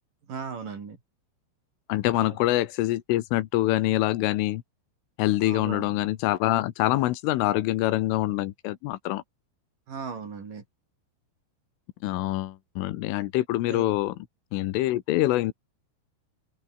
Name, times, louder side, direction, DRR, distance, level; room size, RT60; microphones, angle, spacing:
voice 1, 0.3-1.0 2.2-2.4 5.4-6.0 9.9-10.6 13.7-13.9, right 5 dB, 45° right, 5.2 m, -37 dB
voice 2, 1.9-4.6 5.2-9.2 12.0-14.2 14.5-15.5, left 16 dB, 80° left, 3.7 m, -25 dB
omnidirectional pair, 5.7 m